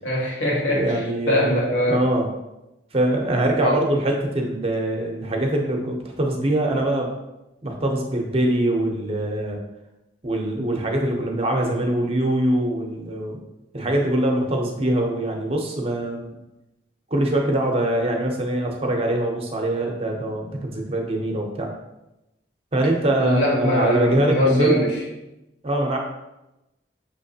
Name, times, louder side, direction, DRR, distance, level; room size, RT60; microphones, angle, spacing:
voice 1, 0.0-2.0 3.6-3.9 23.2-25.0, left 1 dB, 80° left, -4 dB, 1.3 m, -22 dB
voice 2, 0.7-2.3 2.9-7.1 7.6-9.6 10.2-13.4 13.7-16.3 17.1-21.7 22.7-24.8 25.6-26.0, right 1 dB, 30° right, 1 dB, 0.6 m, -23 dB
5.8 x 3.1 x 2.7 m, 0.94 s
head